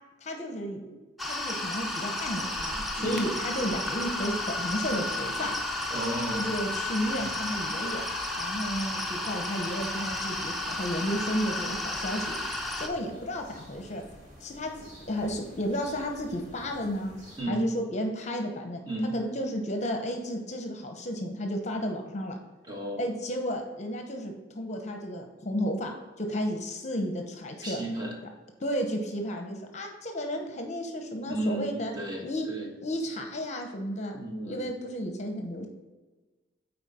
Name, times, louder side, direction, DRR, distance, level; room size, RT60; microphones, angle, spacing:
voice 1, 0.2-1.0 1.2-5.5 6.3-8.0 8.4-14.1 14.4-14.7 15.1-17.1 17.5-18.8 19.1-22.4 23.0-27.8 28.6-31.9 32.2-32.5 32.8-34.2 34.5-35.7, equal, 40° left, 4 dB, 0.8 m, -33 dB
sound 1, 1.2-12.9, left 1 dB, ahead, 0.8 m, -32 dB
sound 2, 2.2-17.4, equal, 40° right, 2.4 m, -50 dB
voice 2, 3.0-3.3 5.9-6.6 17.4-17.7 18.8-19.1 22.7-23.1 27.6-28.1 31.3-32.7 34.1-34.7, right 1 dB, 20° right, -1 dB, 1.3 m, -33 dB
8.9 x 4.5 x 4.2 m, 1.3 s
head